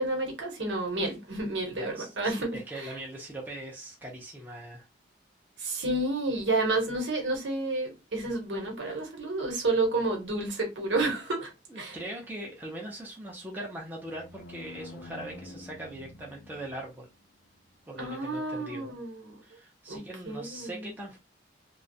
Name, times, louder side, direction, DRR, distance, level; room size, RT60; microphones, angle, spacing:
voice 1, 0.0-2.9 5.6-12.0 18.0-19.4 19.9-20.9, right 2 dB, 90° right, 1.0 m, -30 dB
voice 2, 1.8-4.9 11.7-17.1 17.9-18.9 19.4-21.2, right 1 dB, 10° right, 0.5 m, -41 dB
sound 1, 14.1-17.1, left 2 dB, 90° left, 0.5 m, -47 dB
2.3 x 2.0 x 2.6 m
head